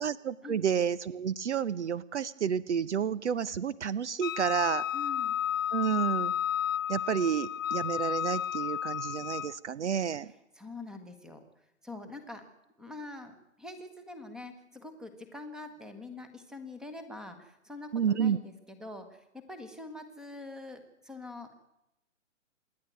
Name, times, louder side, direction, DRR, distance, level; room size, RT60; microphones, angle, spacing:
voice 1, 0.0-4.8 5.7-6.3 6.9-10.3 17.9-18.4, right 7 dB, 60° right, 18 dB, 0.8 m, -30 dB
Wind instrument woodwind instrument, 4.2-9.6, left 10 dB, 75° left, 0.7 m, -32 dB
voice 2, 4.9-5.4 10.2-11.4 11.8-12.5 12.8-21.5, left 2 dB, ahead, 10 dB, 1.2 m, -45 dB
26.5 x 10.5 x 9.3 m, 0.87 s
hypercardioid pair, 150°, 40 cm